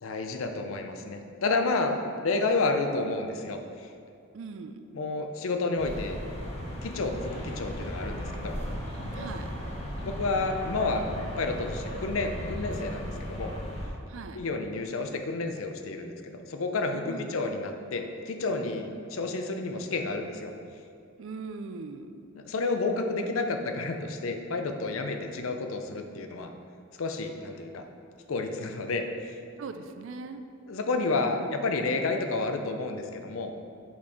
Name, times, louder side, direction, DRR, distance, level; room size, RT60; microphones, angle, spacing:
voice 1, 0.0-3.9 4.9-6.2 6.8-8.5 10.0-11.0 11.4-13.5 14.3-20.5 22.4-26.5 27.0-27.8 28.3-29.0 30.7-33.5, left 3 dB, 75° left, 5 dB, 0.5 m, -30 dB
voice 2, 4.3-4.8 9.1-9.5 14.1-14.4 17.1-17.5 21.2-22.1 29.6-30.4 31.4-31.6, right 4 dB, 65° right, 8 dB, 0.4 m, -40 dB
sound 1, 5.8-13.9, equal, 30° left, 1.1 m, -36 dB
5.9 x 4.3 x 4.7 m, 2.4 s
head